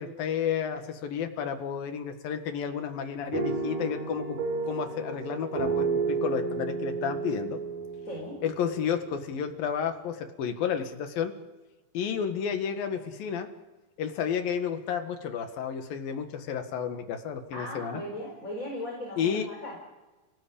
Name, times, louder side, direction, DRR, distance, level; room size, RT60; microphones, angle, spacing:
voice 1, 0.0-4.4 4.7-7.6 8.4-11.3 11.9-13.5 14.0-18.0 19.2-19.5, left 7 dB, 65° left, 6 dB, 3.4 m, -31 dB
sound 1, 3.3-9.4, right 4 dB, 45° right, 4.9 m, -32 dB
voice 2, 8.0-8.4 17.5-19.7, left 1 dB, 20° left, -1 dB, 4.8 m, -37 dB
29.5 x 18.0 x 8.6 m, 1.2 s
omnidirectional pair, 4.6 m